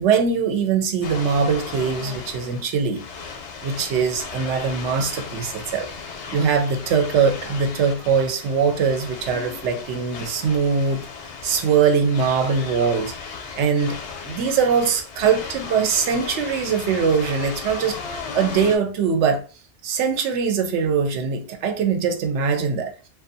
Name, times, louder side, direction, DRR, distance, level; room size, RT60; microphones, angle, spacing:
voice 1, 0.0-3.0 3.6-11.0 11.4-14.0 14.2-19.4 19.8-23.1, right 6 dB, 85° right, 0.9 m, -22 dB
sound 1, 1.0-18.8, left 5 dB, 80° left, 0.9 m, -36 dB
2.5 x 2.2 x 2.6 m
omnidirectional pair, 1.2 m